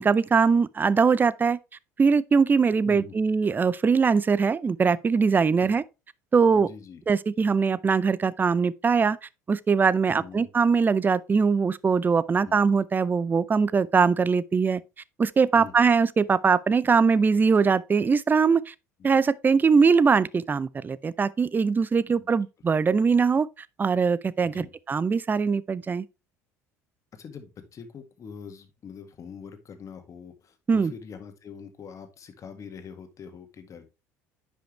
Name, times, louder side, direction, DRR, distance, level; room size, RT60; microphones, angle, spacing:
voice 1, 0.0-1.6 2.0-5.8 6.3-6.7 7.1-9.2 9.5-14.8 15.2-18.7 19.0-23.5 23.8-26.0 30.7-30.9, right 5 dB, 25° right, 0.5 m, -22 dB
voice 2, 2.8-3.1 5.6-5.7 6.5-7.0 10.1-10.5 12.5-12.6 15.5-15.7 22.1-22.3 24.4-24.7 27.1-33.9, left 6 dB, 40° left, 2.0 m, -43 dB
10.0 x 5.5 x 3.3 m
hypercardioid pair, 65°, 8 cm